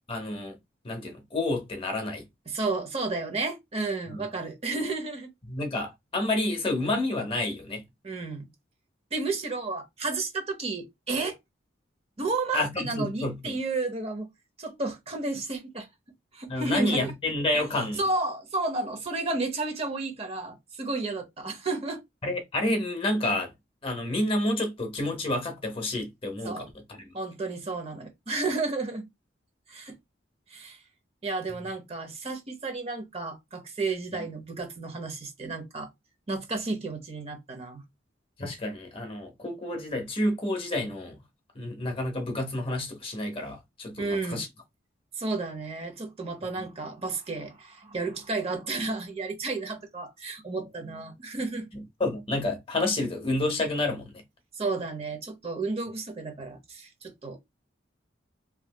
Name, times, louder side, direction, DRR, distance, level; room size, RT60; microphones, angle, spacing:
voice 1, 0.1-0.6 0.8-2.2 4.1-4.2 5.5-7.8 12.5-13.5 16.5-18.0 22.2-23.5 23.8-26.6 38.4-41.2 41.6-44.5 51.7-54.2, left 1 dB, 30° left, 0.7 m, -29 dB
voice 2, 2.5-5.3 8.0-8.5 9.1-11.4 12.2-14.3 14.6-15.9 16.3-17.1 18.0-22.0 26.4-26.7 27.1-29.1 29.7-30.0 30.5-30.8 31.2-35.9 36.3-37.8 44.0-44.4 45.2-51.7 54.6-57.4, right 3 dB, 30° right, 0.7 m, -32 dB
3.2 x 2.7 x 2.2 m
head